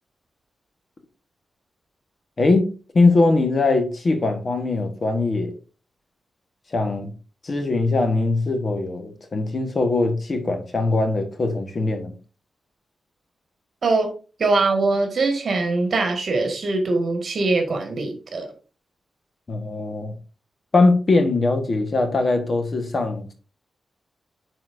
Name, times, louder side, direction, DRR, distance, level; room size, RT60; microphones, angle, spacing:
voice 1, 2.4-5.5 6.7-7.1 7.4-12.1 19.5-20.1 20.7-23.3, left 3 dB, 40° left, 1.3 m, -21 dB
voice 2, 13.8-14.1 14.4-18.5, right 3 dB, 60° right, 1.7 m, -22 dB
9.3 x 4.2 x 2.6 m
wide cardioid pair, 120°, 0 cm